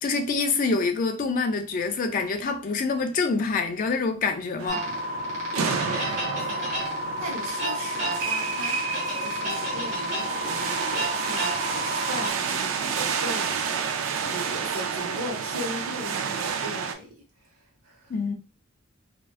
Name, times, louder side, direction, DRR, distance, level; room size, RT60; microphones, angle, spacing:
voice 1, 0.0-4.9 18.1-18.3, left 4 dB, 40° left, 0.3 m, -26 dB
sound 1, 4.6-16.9, right 6 dB, 70° right, 0.3 m, -30 dB
sound 2, 4.7-12.3, equal, 35° right, 0.7 m, -30 dB
voice 2, 5.5-6.1 7.2-8.8 9.2-17.1 17.8-18.1, equal, 90° right, 1.0 m, -37 dB
2.4 x 2.1 x 2.3 m
head